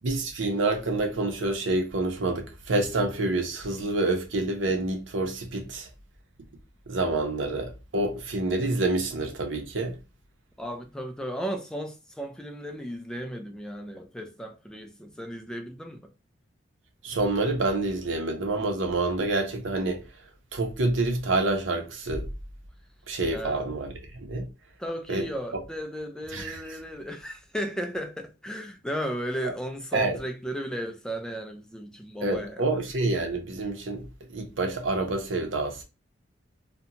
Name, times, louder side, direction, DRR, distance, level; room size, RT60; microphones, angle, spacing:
voice 1, 0.0-5.9 6.9-10.0 17.0-20.0 20.5-22.3 23.1-24.5 25.1-25.3 25.5-25.6 26.3-26.6 29.9-30.2 32.2-34.1 34.3-35.8, right 2 dB, 85° right, 0.7 m, -27 dB
voice 2, 10.6-16.0 23.3-23.7 24.8-32.8, equal, 5° left, 0.3 m, -35 dB
2.5 x 2.1 x 2.7 m
head